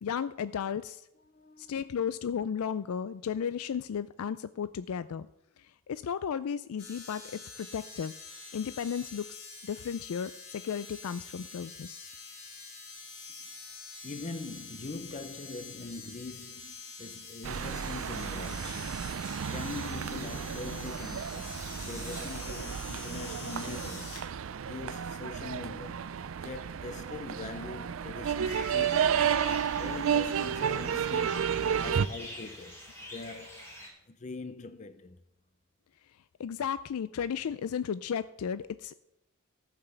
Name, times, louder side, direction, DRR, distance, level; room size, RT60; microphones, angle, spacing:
voice 1, 0.0-1.1 1.6-5.3 5.6-8.2 8.5-12.1 36.4-38.9, left 7 dB, 85° left, 0.4 m, -34 dB
voice 2, 1.3-1.9 13.4-13.5 14.0-24.1 24.6-31.5 31.8-33.8 34.1-35.2, left 3 dB, 35° left, 0.5 m, -43 dB
sound 1, 6.8-24.2 25.1-25.2, left 4 dB, 60° left, 3.7 m, -46 dB
sound 2, 17.4-32.1, right 7 dB, 65° right, 0.4 m, -32 dB
sound 3, 28.4-33.9, equal, 10° left, 3.5 m, -45 dB
14.0 x 5.9 x 6.9 m
head